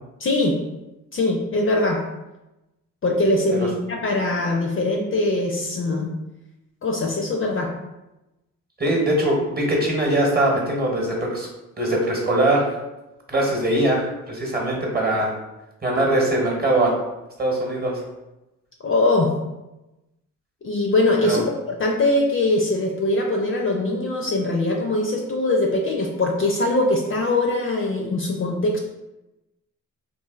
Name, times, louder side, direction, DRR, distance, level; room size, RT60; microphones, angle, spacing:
voice 1, 0.2-0.6 1.1-2.0 3.0-6.1 6.8-7.7 18.8-19.3 20.6-28.8, left 2 dB, 35° left, 0 dB, 0.5 m, -22 dB
voice 2, 8.8-11.5 11.8-12.8 13.3-15.3 15.8-16.9 17.4-18.0 21.2-21.4, right 1 dB, 25° right, -1 dB, 1.0 m, -21 dB
3.0 x 2.4 x 2.4 m, 0.98 s
hypercardioid pair, 45°, 38 cm